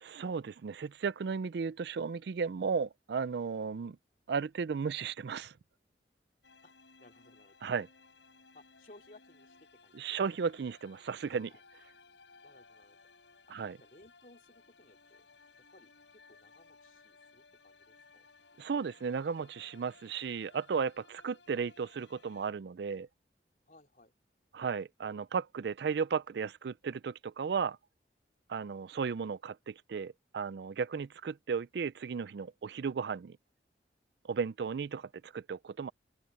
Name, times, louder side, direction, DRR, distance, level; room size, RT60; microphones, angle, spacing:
voice 1, 0.0-4.0 4.3-5.5 7.6-7.9 9.9-11.5 13.5-13.8 18.6-23.1 24.5-27.8 28.5-33.4 34.2-35.9, right 5 dB, 70° right, 0.4 m, -35 dB
sound 1, 6.4-22.5, left 4 dB, 85° left, 6.2 m, -61 dB
voice 2, 7.0-7.7 8.5-10.2 11.3-11.6 12.4-13.1 13.5-15.3 15.7-18.2 23.7-24.1, left 2 dB, 45° left, 3.4 m, -60 dB
open air
head